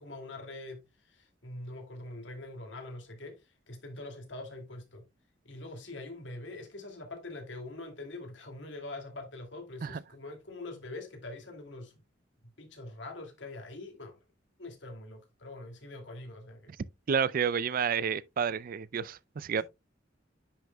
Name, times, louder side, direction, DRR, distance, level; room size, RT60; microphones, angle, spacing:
voice 1, 0.0-5.0 5.4-11.9 12.6-14.1 14.6-16.7 19.5-19.6, left 2 dB, 75° left, 2.4 m, -44 dB
voice 2, 17.1-19.6, right 7 dB, 50° right, 0.4 m, -30 dB
10.0 x 6.3 x 2.2 m
head